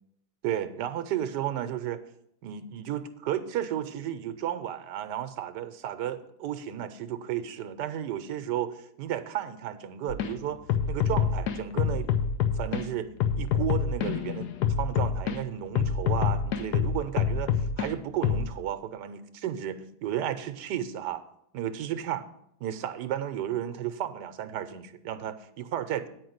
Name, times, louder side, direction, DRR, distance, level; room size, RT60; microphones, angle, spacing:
voice 1, 0.4-2.0 2.4-10.6 10.9-12.1 12.6-14.5 14.8-21.2 21.5-22.2 22.6-26.1, right 10 dB, 85° right, 11 dB, 1.3 m, -33 dB
sound 1, 10.1-10.3 10.7-12.9 13.2-15.4 15.8-17.9 18.2-18.5, left 7 dB, 75° left, 1.3 m, -26 dB
9.4 x 4.7 x 7.8 m, 0.73 s
omnidirectional pair, 1.8 m